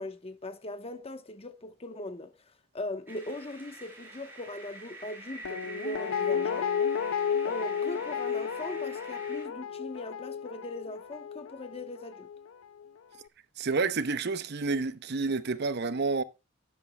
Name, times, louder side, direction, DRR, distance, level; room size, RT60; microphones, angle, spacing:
voice 1, 0.0-2.3 2.7-6.7 7.5-12.3, left 1 dB, 30° left, 1.0 m, -39 dB
sound 1, 3.1-9.4, right 2 dB, 10° right, 5.2 m, -47 dB
Guitar, 5.4-12.5 12.8-12.9, left 7 dB, 80° left, 0.4 m, -32 dB
voice 2, 13.6-16.2, right 4 dB, 55° right, 0.7 m, -29 dB
12.0 x 11.0 x 2.2 m
head